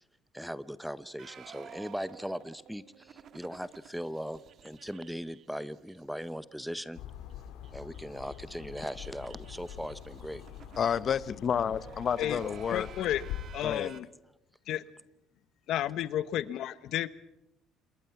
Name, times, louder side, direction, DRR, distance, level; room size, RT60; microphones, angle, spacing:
voice 1, 0.3-7.0 7.7-10.4 12.3-12.4, equal, ahead, 16 dB, 0.7 m, -39 dB
sound 1, 1.2-6.3 6.5-6.6 6.9-7.0 7.3-14.0, right 8 dB, 45° right, 1.4 m, -52 dB
sound 2, 6.9-13.5, left 11 dB, 80° left, 3.5 m, -44 dB
voice 2, 10.8-12.9 13.6-13.9, left 8 dB, 40° left, 17 dB, 0.8 m, -30 dB
voice 3, 12.7-13.2 13.5-14.1 14.7-14.8 15.7-17.1, left 12 dB, 65° left, 15 dB, 1.1 m, -31 dB
27.5 x 21.5 x 5.9 m, 0.89 s
cardioid pair, 135°, 0 cm